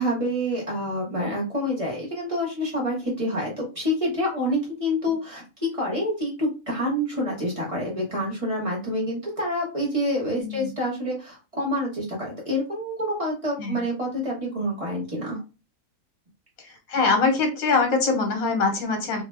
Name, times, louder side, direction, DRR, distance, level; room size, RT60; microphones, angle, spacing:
voice 1, 0.0-15.4, equal, 25° right, -3 dB, 0.9 m, -27 dB
voice 2, 10.4-10.7 13.6-13.8 16.9-19.2, left 4 dB, 75° left, 3 dB, 1.2 m, -23 dB
2.5 x 2.2 x 3.2 m, 0.31 s
omnidirectional pair, 1.5 m